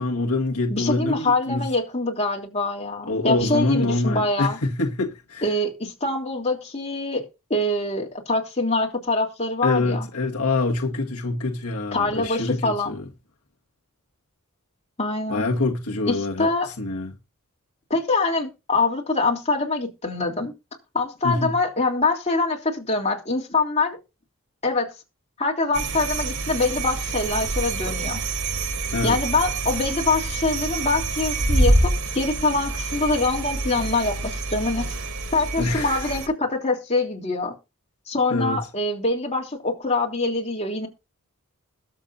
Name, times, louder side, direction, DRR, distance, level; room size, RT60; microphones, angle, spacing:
voice 1, 0.0-1.7 3.1-5.5 9.6-13.0 15.3-16.5 16.8-17.2 21.2-21.5 28.9-29.2 35.6-36.1 38.3-38.6, left 2 dB, 85° left, 1.8 m, -25 dB
voice 2, 0.7-4.6 5.4-7.2 7.5-10.1 11.9-13.0 15.0-15.4 16.1-16.7 17.9-20.5 20.9-24.0 24.6-24.9 25.4-28.2 29.0-34.9 35.3-37.5 38.1-40.9, left 3 dB, 30° left, 3.3 m, -24 dB
sound 1, 25.7-36.3, right 2 dB, 75° right, 3.5 m, -26 dB
21.0 x 7.4 x 2.7 m
head